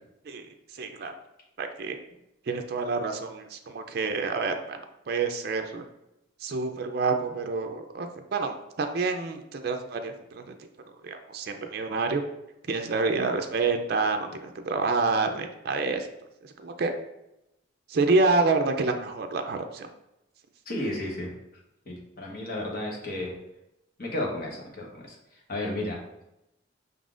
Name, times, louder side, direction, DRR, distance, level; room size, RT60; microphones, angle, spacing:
voice 1, 0.8-1.1 1.6-2.0 2.5-4.8 5.1-5.8 6.4-10.5 11.0-12.2 12.7-16.1 16.4-16.9 17.9-19.9, right 3 dB, 55° right, 5 dB, 0.4 m, -28 dB
voice 2, 20.7-21.3 21.9-23.3 24.0-25.1 25.5-26.0, left 1 dB, 50° left, -1 dB, 1.2 m, -32 dB
5.4 x 3.9 x 2.4 m, 0.87 s
head